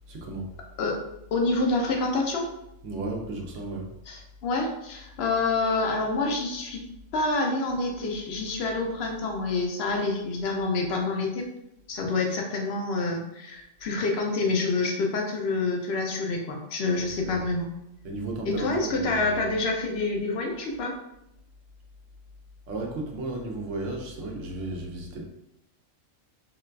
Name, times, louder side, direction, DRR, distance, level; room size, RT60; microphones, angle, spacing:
voice 1, 0.1-0.5 2.8-3.9 17.0-17.5 18.0-19.4 22.7-25.3, right 2 dB, 70° right, 1 dB, 0.9 m, -34 dB
voice 2, 1.3-2.5 4.1-6.8 7.1-11.5 11.9-17.7 18.4-21.0, left 3 dB, 65° left, 2 dB, 0.7 m, -27 dB
3.7 x 2.3 x 2.3 m, 0.85 s
omnidirectional pair, 1.4 m